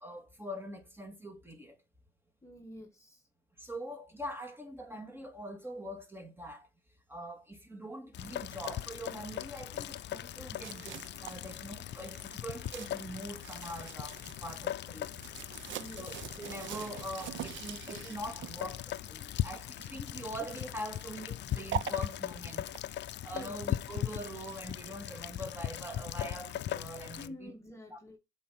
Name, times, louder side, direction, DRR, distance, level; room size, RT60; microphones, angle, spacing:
voice 1, 0.0-1.8 3.6-6.7 7.1-15.1 16.0-27.5 27.9-28.0, equal, 10° right, 2.2 m, -43 dB
voice 2, 2.4-3.3 15.7-16.2 23.3-23.6 27.2-28.2, left 1 dB, 15° left, 1.3 m, -48 dB
Rain, 8.1-27.3, left 12 dB, 60° left, 0.5 m, -39 dB
sound 1, 10.6-22.9, right 12 dB, 70° right, 0.6 m, -45 dB
7.6 x 4.4 x 5.8 m
cardioid pair, 90°, 20 cm